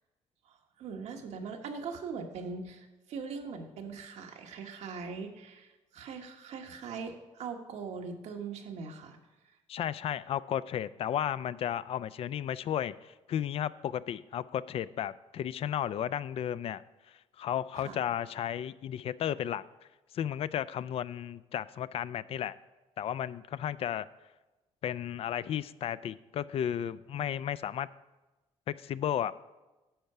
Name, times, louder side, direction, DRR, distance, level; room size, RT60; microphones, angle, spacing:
voice 1, 0.4-9.2 17.8-18.0, right 5 dB, 80° right, 4 dB, 1.2 m, -41 dB
voice 2, 9.7-16.8 17.4-19.6 20.1-22.6 23.0-24.1 24.8-27.9 28.7-29.4, left 10 dB, 60° left, 17 dB, 0.3 m, -33 dB
10.0 x 4.6 x 6.6 m, 1.1 s
cardioid pair, 100°, 11 cm